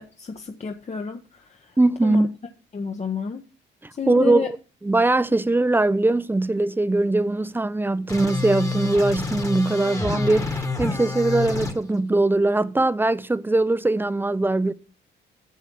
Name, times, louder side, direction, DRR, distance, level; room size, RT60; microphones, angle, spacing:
voice 1, 0.0-1.4 2.0-2.3 2.7-3.4 4.0-4.5, left 5 dB, 35° left, 1.0 m, -30 dB
voice 2, 1.8-2.3 4.1-4.6 4.8-14.7, right 2 dB, 10° right, 0.6 m, -21 dB
sound 1, 8.1-11.7, left 3 dB, 15° left, 1.5 m, -28 dB
9.3 x 7.0 x 6.1 m
cardioid pair, 90°, 20 cm